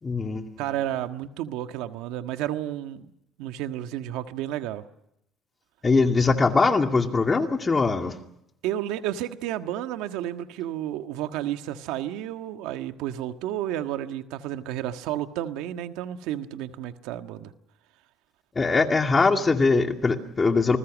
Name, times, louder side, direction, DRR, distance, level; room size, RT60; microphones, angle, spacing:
voice 1, 0.0-0.5 5.8-8.2 18.6-20.8, left 4 dB, 25° left, 5 dB, 2.4 m, -22 dB
voice 2, 0.6-3.1 3.4-4.8 8.6-17.5, right 12 dB, 90° right, 8 dB, 1.5 m, -31 dB
28.5 x 20.5 x 6.3 m, 0.78 s
cardioid pair, 115°, 0 cm